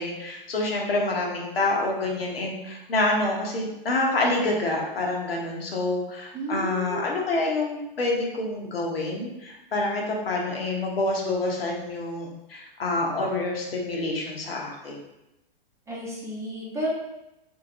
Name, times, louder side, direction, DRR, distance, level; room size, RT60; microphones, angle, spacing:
voice 1, 0.0-15.0, left 2 dB, 80° left, -1 dB, 1.0 m, -27 dB
voice 2, 6.3-7.2 15.9-16.9, right 1 dB, 10° right, -5 dB, 0.7 m, -32 dB
3.7 x 2.7 x 2.9 m, 0.90 s
hypercardioid pair, 115°, 29 cm